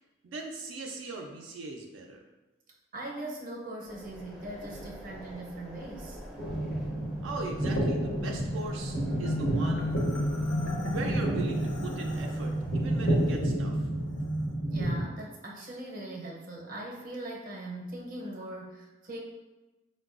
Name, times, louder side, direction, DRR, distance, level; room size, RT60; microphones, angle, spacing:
voice 1, 0.2-2.2 7.2-10.0 10.9-13.9, right 2 dB, 90° right, 1 dB, 0.4 m, -39 dB
voice 2, 2.9-6.2 14.6-19.2, right 1 dB, 45° right, -1 dB, 0.6 m, -40 dB
sound 1, 3.8-13.3, equal, 5° right, 0.4 m, -47 dB
sound 2, 6.4-15.0, right 1 dB, 85° left, 0.9 m, -30 dB
Marimba xylophone, 9.1-12.5, left 2 dB, 65° left, 0.6 m, -35 dB
4.5 x 2.2 x 2.4 m, 1.1 s
head